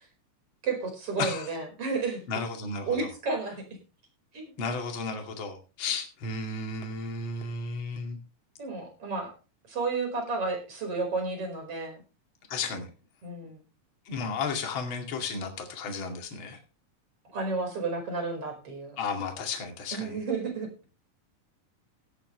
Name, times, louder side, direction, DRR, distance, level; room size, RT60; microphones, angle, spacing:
voice 1, 0.6-2.2 2.9-3.7 4.3-4.4 8.6-9.3 9.7-12.0 13.2-13.6 17.3-19.0 19.9-20.7, right 4 dB, 45° right, 4 dB, 5.8 m, -31 dB
voice 2, 1.2-1.5 2.3-3.1 4.6-8.2 12.5-12.9 14.1-16.6 19.0-20.2, left 4 dB, 40° left, 3 dB, 2.8 m, -33 dB
17.5 x 10.5 x 3.2 m, 0.33 s
omnidirectional pair, 3.8 m